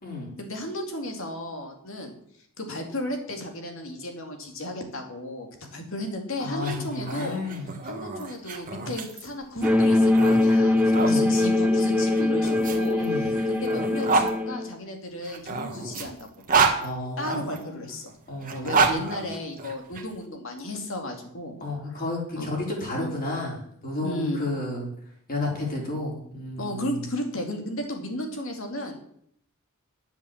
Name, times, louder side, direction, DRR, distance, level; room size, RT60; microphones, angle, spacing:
voice 1, 0.4-2.2 2.6-7.4 7.8-16.3 17.2-18.1 18.5-21.6 21.9-22.0 22.3-22.5 22.9-23.1 24.0-24.4 26.6-29.0, left 1 dB, 60° left, 4 dB, 2.5 m, -34 dB
voice 2, 6.4-7.7 11.0-11.3 13.0-13.3 16.8-17.8 18.3-19.1 21.6-24.9 25.3-26.9, left 2 dB, 40° left, -2 dB, 4.3 m, -32 dB
sound 1, 6.5-11.2 12.1-14.3 15.2-17.6 18.4-20.0, right 4 dB, 40° right, 1.6 m, -28 dB
sound 2, 9.6-14.7, left 2 dB, 5° right, 0.7 m, -22 dB
11.5 x 7.2 x 7.3 m, 0.67 s
head